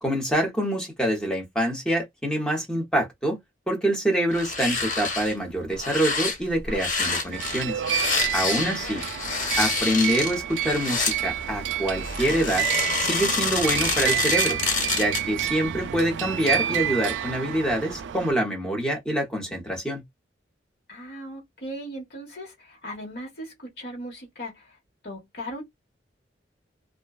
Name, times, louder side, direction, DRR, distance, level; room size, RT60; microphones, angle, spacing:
voice 1, 0.0-3.4 3.7-7.8 8.3-9.0 9.6-12.7 13.0-14.6 14.9-20.0, right 1 dB, 5° left, 0.7 m, -26 dB
sound 1, 4.3-5.3 5.7-11.2 12.0-15.4 15.7-15.8, left 4 dB, 90° left, 1.3 m, -27 dB
sound 2, 7.3-18.3, right 10 dB, 75° right, 0.3 m, -29 dB
voice 2, 8.4-8.8 20.9-24.8 25.0-25.6, equal, 55° left, 1.2 m, -38 dB
2.4 x 2.2 x 2.3 m
head